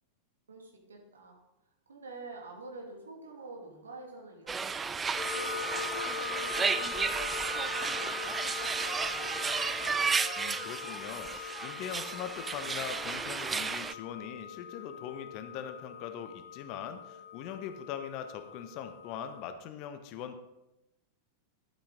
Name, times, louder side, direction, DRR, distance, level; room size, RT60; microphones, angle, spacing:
voice 1, 0.5-1.4 1.9-9.9, right 3 dB, 70° right, 1 dB, 2.3 m, -48 dB
sound 1, 4.5-13.9, right 5 dB, 15° right, 0.4 m, -33 dB
sound 2, 5.2-19.4, left 8 dB, 25° left, 2.4 m, -42 dB
voice 2, 10.4-20.4, left 8 dB, 40° left, 9 dB, 1.0 m, -41 dB
11.5 x 8.7 x 3.8 m, 0.92 s
figure-of-eight pair, 90°, 0 cm